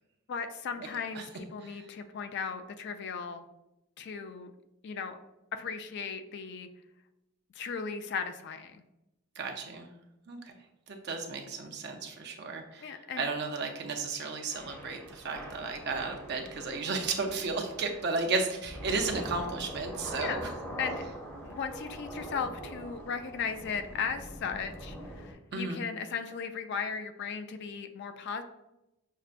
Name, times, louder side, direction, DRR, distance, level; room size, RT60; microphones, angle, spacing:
voice 1, 0.3-3.4 4.0-4.5 4.8-5.2 5.5-6.7 7.6-8.8 12.8-13.2 20.2-20.5 20.8-21.0 21.4-28.4, left 6 dB, 50° left, 8 dB, 0.3 m, -36 dB
voice 2, 9.4-9.9 10.3-10.5 10.9-20.5 25.5-25.8, right 4 dB, 50° right, 3 dB, 0.5 m, -34 dB
Thunder / Rain, 14.5-25.3, equal, 10° left, 0.8 m, -43 dB
6.4 x 2.2 x 2.4 m, 0.91 s
head